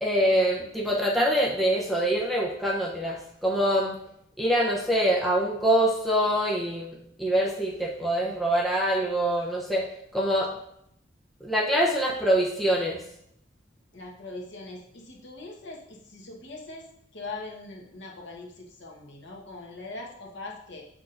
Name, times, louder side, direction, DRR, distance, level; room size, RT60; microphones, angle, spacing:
voice 1, 0.0-3.9 4.4-9.8 10.1-10.5 11.4-13.0, equal, ahead, -3 dB, 0.7 m, -24 dB
voice 2, 13.9-16.9 17.1-20.8, left 2 dB, 65° left, -1 dB, 1.2 m, -41 dB
7.2 x 6.1 x 2.6 m, 0.73 s
head